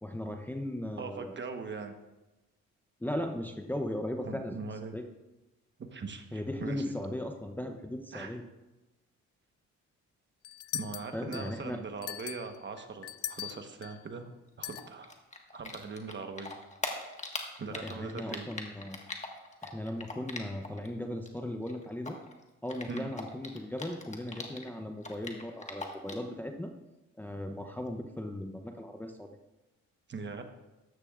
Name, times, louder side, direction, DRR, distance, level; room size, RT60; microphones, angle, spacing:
voice 1, 0.0-1.4 3.0-4.6 4.9-5.1 6.3-8.4 11.1-11.8 17.7-19.0 19.6-22.2 22.6-26.7 27.2-29.3, left 1 dB, 5° left, 4 dB, 0.7 m, -37 dB
voice 2, 1.0-1.9 4.2-4.9 5.8-6.9 8.1-8.3 10.7-14.3 14.6-15.1 15.5-16.5 17.6-18.5 22.9-23.1 30.1-30.4, right 4 dB, 40° right, 6 dB, 1.2 m, -41 dB
sound 1, 10.4-11.6 12.0-14.0 14.6-14.9, left 12 dB, 50° left, 0.4 m, -40 dB
Typing, 14.7-16.1 16.4-20.9 21.1-24.7 25.0-26.3, left 3 dB, 25° left, 1.5 m, -40 dB
14.0 x 10.5 x 2.5 m, 1.0 s
cardioid pair, 90°, 30 cm